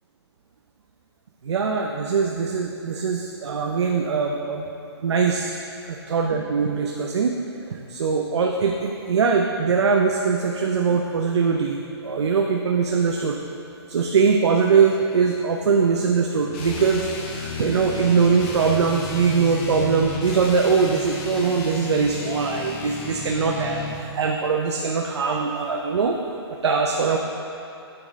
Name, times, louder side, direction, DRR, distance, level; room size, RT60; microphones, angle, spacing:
voice 1, 1.4-4.6 5.0-5.5 5.9-7.4 7.6-13.4 13.9-26.1 26.6-27.2, right 5 dB, 75° right, 1 dB, 0.7 m, -22 dB
sound 1, 16.5-24.1, left 3 dB, 25° left, 0.8 m, -33 dB
10.0 x 6.1 x 3.6 m, 2.6 s
hypercardioid pair, 160°, 14 cm